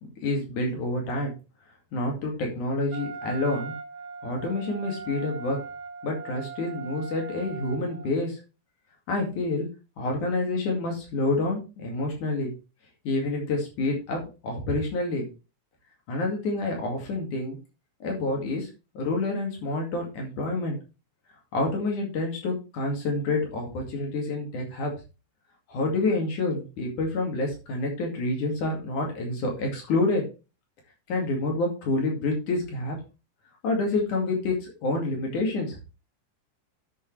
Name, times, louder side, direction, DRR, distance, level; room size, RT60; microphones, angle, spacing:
voice 1, 0.2-1.3 1.9-3.7 4.2-5.6 6.0-8.4 9.1-9.7 10.0-12.5 13.1-15.3 16.1-17.6 18.0-18.7 19.0-20.8 21.5-24.9 25.7-30.2 31.1-33.0 33.6-35.8, left 2 dB, 65° left, 0 dB, 3.7 m, -28 dB
Wind instrument woodwind instrument, 2.9-8.2, right 5 dB, 80° right, 2.8 m, -40 dB
11.0 x 6.9 x 3.3 m, 0.30 s
omnidirectional pair, 3.9 m